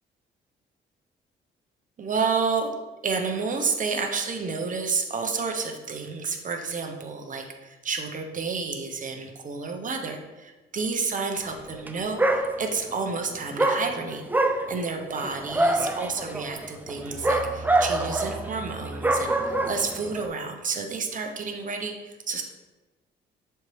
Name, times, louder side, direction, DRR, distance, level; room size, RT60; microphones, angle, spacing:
voice 1, 2.0-2.7 3.0-14.3 14.7-22.4, right 4 dB, 40° right, 4 dB, 0.9 m, -30 dB
Dog, 11.7-11.9 12.2-12.9 13.6-20.3, right 2 dB, 10° right, 0.5 m, -25 dB
6.5 x 4.5 x 3.2 m, 1.2 s
cardioid pair, 90°, 20 cm